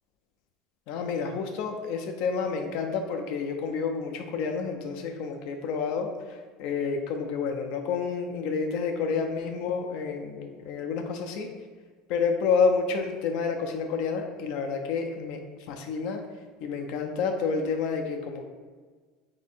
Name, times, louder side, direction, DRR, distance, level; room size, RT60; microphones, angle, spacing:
voice 1, 0.9-11.5 12.1-15.4 15.7-16.2 16.6-18.5, left 5 dB, 50° left, 4 dB, 0.4 m, -29 dB
3.3 x 2.7 x 4.2 m, 1.5 s
cardioid pair, 175°, 0 cm